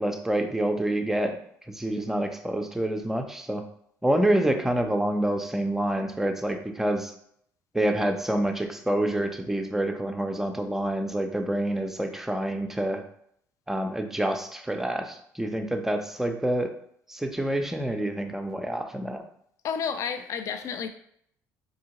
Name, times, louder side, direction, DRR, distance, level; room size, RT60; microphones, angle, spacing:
voice 1, 0.0-1.3 1.7-3.6 4.0-7.1 7.7-13.0 13.7-16.7 17.1-19.2, right 1 dB, 5° right, 5 dB, 0.5 m, -27 dB
voice 2, 19.6-20.9, left 7 dB, 55° left, 8 dB, 0.3 m, -31 dB
3.5 x 2.8 x 2.9 m, 0.68 s
supercardioid pair, 90°, 6 cm